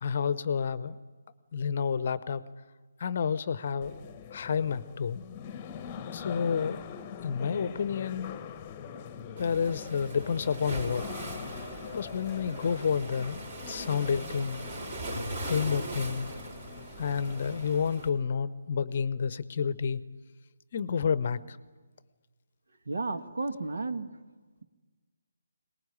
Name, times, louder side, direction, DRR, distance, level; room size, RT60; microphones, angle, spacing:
voice 1, 0.0-1.0 1.5-2.4 3.0-4.0 4.3-5.2 6.1-6.9 7.2-8.4 9.4-11.1 11.9-14.6 15.4-16.3 17.0-20.0 20.7-21.6, left 6 dB, 40° left, 16 dB, 0.8 m, -30 dB
sound 1, 3.8-17.7, left 7 dB, 20° left, 1.1 m, -43 dB
Waves surf, 9.4-18.1, right 1 dB, 40° right, 5.0 m, -40 dB
voice 2, 22.8-24.1, right 3 dB, 60° right, 8 dB, 1.6 m, -32 dB
23.0 x 19.5 x 9.8 m, 1.4 s
figure-of-eight pair, 145°, 0 cm